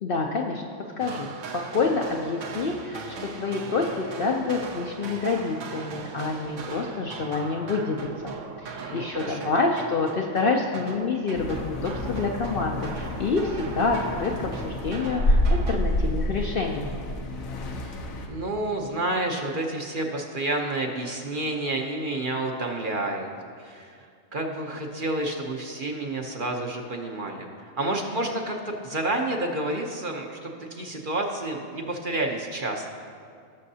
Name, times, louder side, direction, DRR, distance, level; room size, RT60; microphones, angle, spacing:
voice 1, 0.0-0.6 1.0-8.3 8.6-16.9, left 4 dB, 55° left, 1 dB, 0.6 m, -27 dB
sound 1, 1.0-15.8, right 5 dB, 70° right, 1.0 m, -39 dB
voice 2, 8.8-9.5 17.8-18.0 18.3-23.3 23.6-24.0 24.3-27.5 27.8-32.8, right 2 dB, 45° right, 1 dB, 0.8 m, -29 dB
sound 2, 11.3-18.3, left 1 dB, 85° left, 1.3 m, -28 dB
18.5 x 6.4 x 2.8 m, 2.2 s
omnidirectional pair, 1.4 m